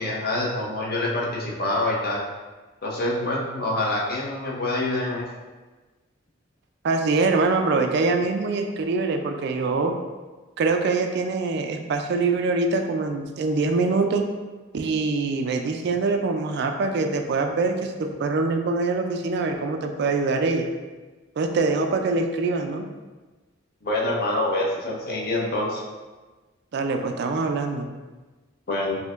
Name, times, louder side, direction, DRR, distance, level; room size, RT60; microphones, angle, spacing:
voice 1, 0.0-2.2 2.8-5.3 23.8-25.8 28.7-29.0, left 2 dB, 50° left, -3 dB, 0.7 m, -26 dB
voice 2, 6.8-9.9 10.6-14.2 14.7-20.7 21.4-22.8 26.7-27.9, right 3 dB, 55° right, 5 dB, 0.3 m, -24 dB
4.3 x 2.7 x 2.4 m, 1.3 s
head